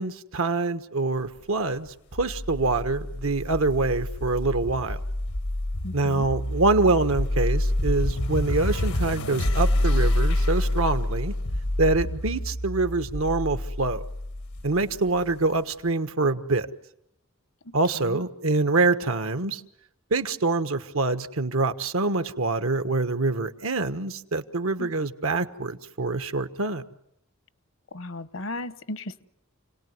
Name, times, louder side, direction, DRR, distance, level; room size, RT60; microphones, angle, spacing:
voice 1, 0.0-5.0 5.9-11.3 11.8-14.0 14.6-16.7 17.7-19.6 20.1-26.8, right 3 dB, 70° right, 1.3 m, -25 dB
sound 1, 2.2-15.3, left 1 dB, 85° left, 1.4 m, -27 dB
voice 2, 5.8-6.3 17.6-18.2 24.8-24.9 27.9-29.2, left 1 dB, 65° left, 1.0 m, -36 dB
30.0 x 18.5 x 9.5 m
head